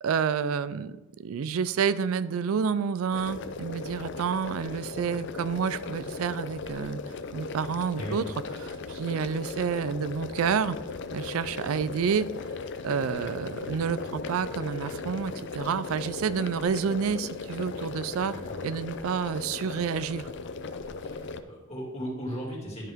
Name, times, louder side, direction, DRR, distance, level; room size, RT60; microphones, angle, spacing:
voice 1, 0.0-7.0 7.3-8.2 8.6-10.8 11.1-12.3 12.8-18.3 18.6-20.3, right 6 dB, 75° right, 15 dB, 0.4 m, -29 dB
sound 1, 3.1-21.4, left 4 dB, 55° left, 0.5 m, -37 dB
voice 2, 21.0-22.9, equal, 30° left, -3 dB, 2.5 m, -37 dB
12.0 x 5.6 x 3.6 m, 1.1 s
head